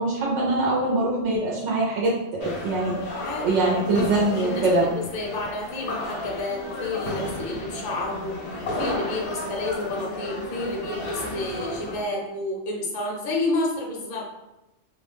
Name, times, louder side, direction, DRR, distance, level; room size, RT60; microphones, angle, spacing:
voice 1, 0.0-4.9, right 2 dB, 80° right, -4 dB, 0.9 m, -23 dB
sound 1, 2.4-12.0, left 2 dB, 70° left, 0.9 m, -33 dB
voice 2, 3.1-8.4 8.7-14.3, left 2 dB, 55° left, -2 dB, 0.6 m, -30 dB
2.3 x 2.0 x 3.2 m, 0.95 s
omnidirectional pair, 1.2 m